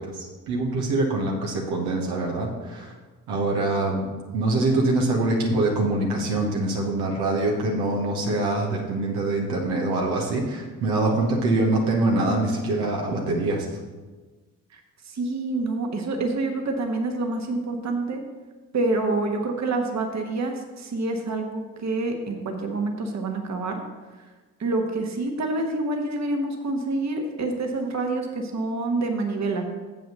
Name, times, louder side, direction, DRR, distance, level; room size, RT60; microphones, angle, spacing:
voice 1, 0.0-2.9 3.3-13.8, right 2 dB, 75° right, -1 dB, 1.3 m, -24 dB
voice 2, 15.1-18.2 18.7-23.8 24.6-29.7, right 2 dB, 45° right, 3 dB, 1.4 m, -27 dB
7.4 x 5.5 x 6.6 m, 1.3 s
hypercardioid pair, 45°, 39 cm